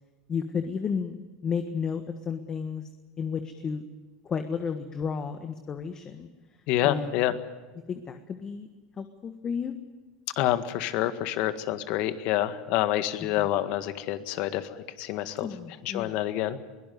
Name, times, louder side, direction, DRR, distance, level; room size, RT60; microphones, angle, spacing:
voice 1, 0.3-1.2 1.4-2.8 3.2-3.8 4.2-6.3 6.8-7.3 7.9-8.7 9.0-9.7 13.4-13.5 15.4-16.1, left 6 dB, 30° left, 8 dB, 1.5 m, -32 dB
voice 2, 6.7-7.3 10.4-15.5 15.8-16.6, left 13 dB, 60° left, 11 dB, 1.7 m, -27 dB
23.0 x 18.0 x 9.4 m, 1.3 s
supercardioid pair, 115°, 2 cm